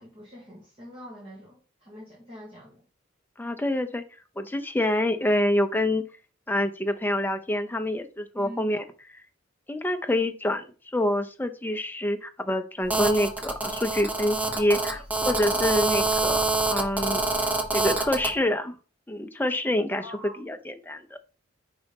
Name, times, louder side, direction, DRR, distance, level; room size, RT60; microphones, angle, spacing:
voice 1, 0.0-2.8 8.4-8.7 14.9-15.0 15.4-15.7 16.1-16.2 20.0-20.4, equal, 30° right, -3 dB, 1.5 m, -45 dB
voice 2, 3.4-4.0 4.4-6.0 6.5-8.8 9.7-10.6 10.9-16.4 16.7-17.2 17.7-18.8 19.1-20.0 20.4-21.2, left 1 dB, 10° left, 7 dB, 0.6 m, -26 dB
Telephone, 12.9-18.3, right 3 dB, 10° right, 1.0 m, -26 dB
5.2 x 4.1 x 5.2 m, 0.37 s
head